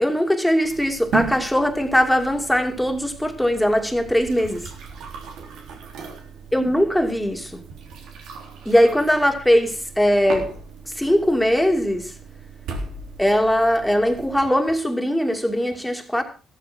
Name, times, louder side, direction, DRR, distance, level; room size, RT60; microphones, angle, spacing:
voice 1, 0.0-4.6 6.5-7.5 8.7-10.5 11.0-12.1 13.2-16.2, equal, 5° left, 2.6 m, -20 dB
sound 1, 0.6-14.5, right 5 dB, 85° right, 3.6 m, -36 dB
14.0 x 13.0 x 4.5 m
cardioid pair, 90°, 0 cm